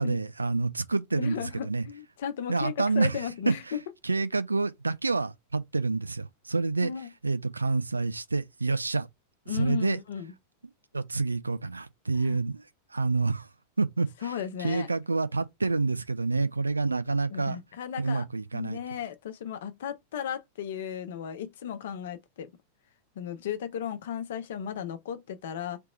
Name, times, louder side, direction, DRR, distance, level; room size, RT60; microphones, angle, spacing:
voice 1, 0.0-1.8 2.5-3.5 4.0-6.9 7.2-9.1 9.5-10.0 10.9-12.6 12.9-13.5 13.8-17.6 18.0-18.8, right 3 dB, 80° right, 0.4 m, -28 dB
voice 2, 1.1-3.8 6.8-7.1 9.5-10.3 12.2-12.4 14.2-14.9 17.3-18.2 18.5-22.5 23.2-25.8, left 8 dB, 60° left, 0.8 m, -35 dB
3.4 x 3.0 x 4.3 m
figure-of-eight pair, 90°, 0 cm